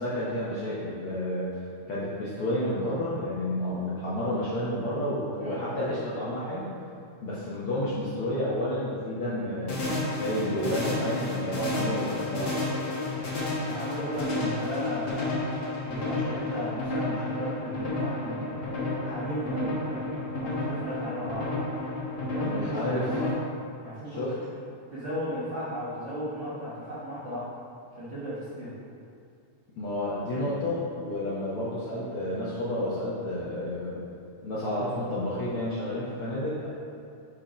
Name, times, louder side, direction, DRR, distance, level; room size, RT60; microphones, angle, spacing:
voice 1, 0.0-1.5 1.9-6.7 7.2-12.5 22.4-23.1 24.1-24.3 29.8-34.0 34.4-36.7, left 1 dB, 70° left, -8 dB, 1.3 m, -30 dB
sound 1, 9.7-23.3, left 2 dB, 50° left, 1.8 m, -31 dB
voice 2, 13.6-15.4 15.8-18.7 19.0-20.1 20.4-21.5 22.2-23.3 23.8-24.3 24.9-27.5 27.9-28.7, equal, 70° right, -11 dB, 0.6 m, -35 dB
6.4 x 4.6 x 5.0 m, 2.4 s
omnidirectional pair, 3.7 m